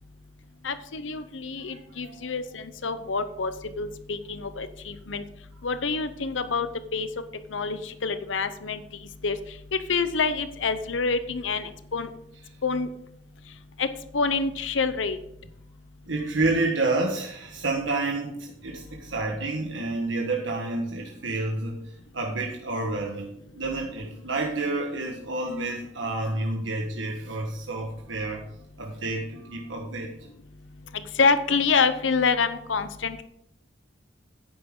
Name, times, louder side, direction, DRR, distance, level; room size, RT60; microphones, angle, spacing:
voice 1, 0.6-3.5 3.8-5.2 5.6-7.1 7.5-8.8 9.2-9.4 9.7-12.1 12.6-12.9 13.8-13.9 14.1-15.2 30.9-33.2, left 4 dB, 80° left, 11 dB, 0.7 m, -27 dB
voice 2, 1.6-2.3 16.0-21.8 22.1-28.4 28.8-30.1, right 2 dB, 85° right, 0 dB, 1.4 m, -29 dB
10.0 x 9.4 x 3.8 m, 0.75 s
head